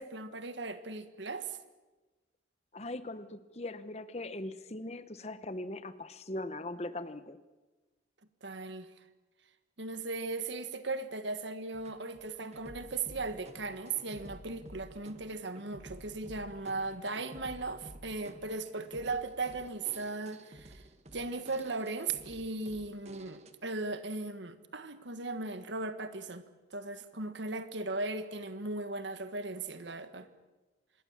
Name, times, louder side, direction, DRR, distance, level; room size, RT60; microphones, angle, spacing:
voice 1, 0.0-1.6 8.4-8.9 9.8-20.8 21.1-26.5 26.7-30.3, right 3 dB, 70° right, 1.6 m, -37 dB
voice 2, 2.7-7.4, left 2 dB, 35° left, 1.0 m, -40 dB
sound 1, 11.7-23.5, right 1 dB, 35° right, 1.4 m, -52 dB
25.5 x 20.5 x 7.4 m
head